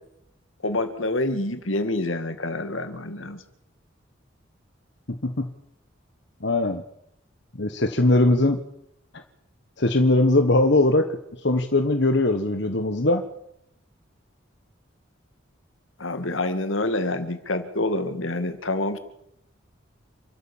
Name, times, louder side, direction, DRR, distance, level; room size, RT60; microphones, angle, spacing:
voice 1, 0.6-3.4 16.0-19.0, left 2 dB, 80° left, 9 dB, 2.3 m, -27 dB
voice 2, 6.4-6.8 7.6-8.6 9.8-11.2 11.4-13.2, left 2 dB, 60° left, 7 dB, 1.5 m, -20 dB
28.5 x 13.0 x 7.4 m, 0.80 s
head